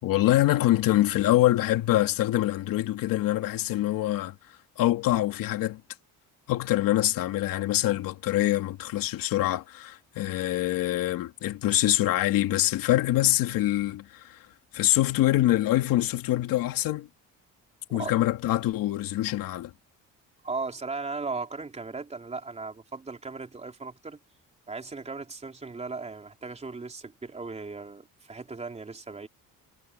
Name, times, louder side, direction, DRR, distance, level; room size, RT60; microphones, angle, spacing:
voice 1, 0.0-4.3 4.8-5.8 6.5-14.4 14.7-17.1 17.9-19.7, left 15 dB, 80° left, 2.8 m, -25 dB
voice 2, 20.4-24.2 24.7-29.3, right 4 dB, 20° right, 3.7 m, -37 dB
cardioid pair, 145°, 33 cm